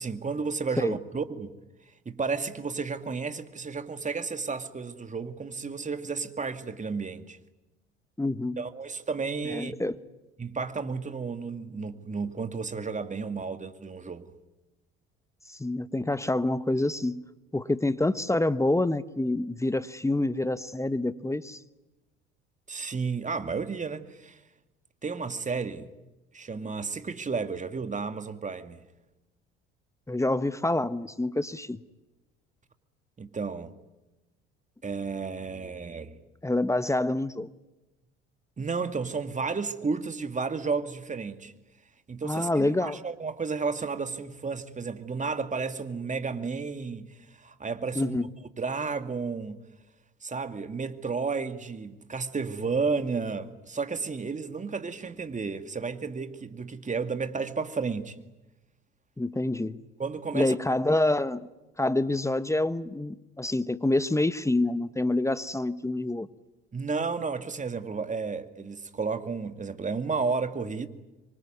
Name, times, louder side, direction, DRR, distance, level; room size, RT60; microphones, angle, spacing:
voice 1, 0.0-1.5 2.1-7.4 8.6-9.8 10.4-14.3 22.7-24.4 25.0-25.9 26.3-28.8 33.2-33.7 34.8-36.2 38.6-41.5 42.1-48.2 48.6-49.6 50.2-58.2 60.0-60.5 66.7-70.9, right 4 dB, 25° right, 2.4 m, -32 dB
voice 2, 8.2-8.6 9.5-9.9 15.5-17.2 17.5-21.6 30.1-31.8 36.4-37.5 42.2-43.0 47.9-48.3 59.2-59.8 60.3-61.5 61.8-66.3, left 2 dB, 10° left, 1.2 m, -27 dB
26.5 x 23.5 x 9.5 m
hypercardioid pair, 65°, 29 cm